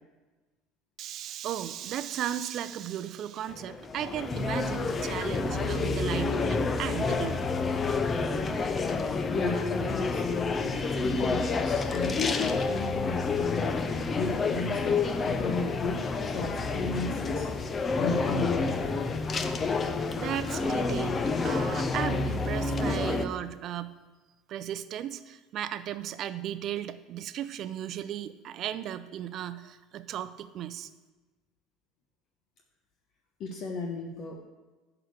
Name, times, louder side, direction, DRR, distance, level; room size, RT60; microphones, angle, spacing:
voice 1, 1.0-7.4 20.1-24.0 24.5-30.9, right 11 dB, 50° right, 13 dB, 0.5 m, -35 dB
sound 1, 3.5-23.2, left 4 dB, 25° left, 0.7 m, -29 dB
voice 2, 9.0-17.5 17.9-19.0 23.1-23.2 33.4-34.4, left 3 dB, 50° left, 1 dB, 1.0 m, -35 dB
11.0 x 4.9 x 6.6 m, 1.2 s
cardioid pair, 125°, 0 cm